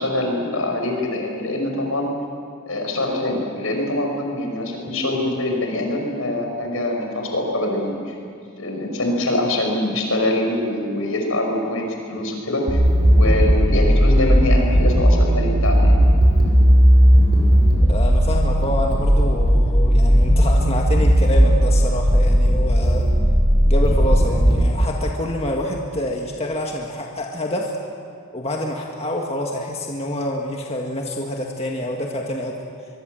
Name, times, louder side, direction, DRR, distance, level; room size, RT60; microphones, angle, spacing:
voice 1, 0.0-2.1 2.7-8.1 8.6-12.8 13.1-15.9, left 1 dB, 75° left, 2 dB, 5.7 m, -24 dB
sound 1, 12.7-24.6, equal, 50° right, 6.8 m, -15 dB
voice 2, 17.9-23.1 23.6-27.7 28.3-32.6, left 1 dB, 30° left, 0 dB, 1.8 m, -27 dB
24.0 x 23.0 x 7.9 m, 2.5 s
head